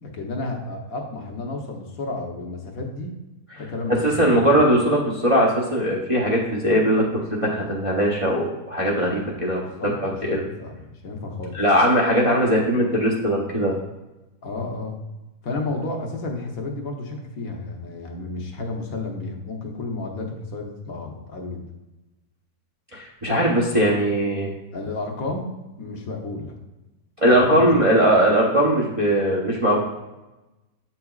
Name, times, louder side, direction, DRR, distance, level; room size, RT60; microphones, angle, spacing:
voice 1, 0.0-3.2 3.5-4.5 9.6-11.6 14.4-15.0 15.4-21.6 24.7-25.5 25.8-26.6 27.3-28.2, left 2 dB, 65° left, 1 dB, 1.3 m, -32 dB
voice 2, 4.0-7.0 7.4-9.6 10.0-10.4 11.5-13.8 22.9-24.5 27.2-29.8, equal, 35° right, -4 dB, 0.6 m, -20 dB
7.8 x 5.8 x 2.3 m, 1.0 s
omnidirectional pair, 1.7 m